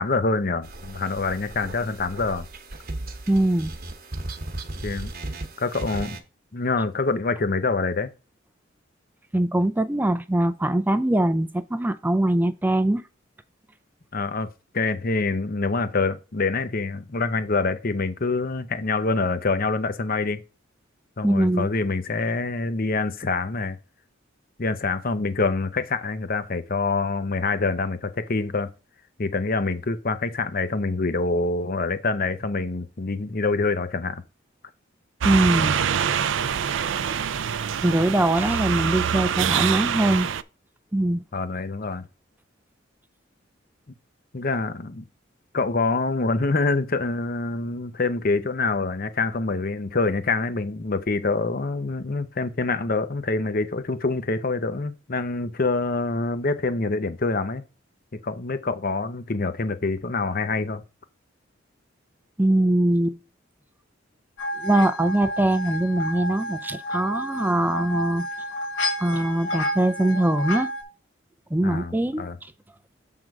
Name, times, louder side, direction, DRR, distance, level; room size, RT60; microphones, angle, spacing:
voice 1, 0.0-2.5 4.8-5.1 5.6-6.2 6.5-8.1 14.1-14.5 14.7-20.4 21.2-23.8 24.6-28.7 29.2-34.2 41.3-42.1 44.3-45.0 45.5-57.6 58.2-60.8 71.6-72.4, left 3 dB, 45° left, 0.8 m, -26 dB
sound 1, 0.6-6.2, right 2 dB, 50° right, 1.1 m, -36 dB
voice 2, 3.3-3.7 9.3-13.0 21.2-21.7 35.2-35.8 37.8-40.3 40.9-41.2 62.4-63.2 64.6-68.3 69.0-70.7 71.5-72.3, right 1 dB, 10° right, 0.4 m, -22 dB
sound 2, 35.2-40.4, right 8 dB, 70° right, 0.4 m, -25 dB
sound 3, 64.4-70.8, equal, 70° left, 1.8 m, -30 dB
7.7 x 3.7 x 4.7 m
head